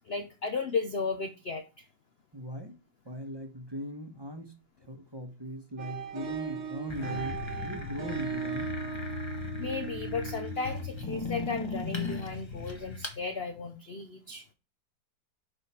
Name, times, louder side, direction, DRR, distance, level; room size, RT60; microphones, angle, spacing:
voice 1, 0.1-1.7 9.6-14.4, left 4 dB, 80° left, 7 dB, 0.5 m, -34 dB
voice 2, 2.3-2.8 3.0-4.5 4.8-8.7, equal, 20° right, 4 dB, 0.8 m, -39 dB
sound 1, 5.8-11.3, right 7 dB, 45° right, 1.3 m, -38 dB
sound 2, 6.9-13.2, left 4 dB, 20° left, 0.7 m, -37 dB
6.5 x 4.9 x 4.3 m, 0.30 s
omnidirectional pair, 2.0 m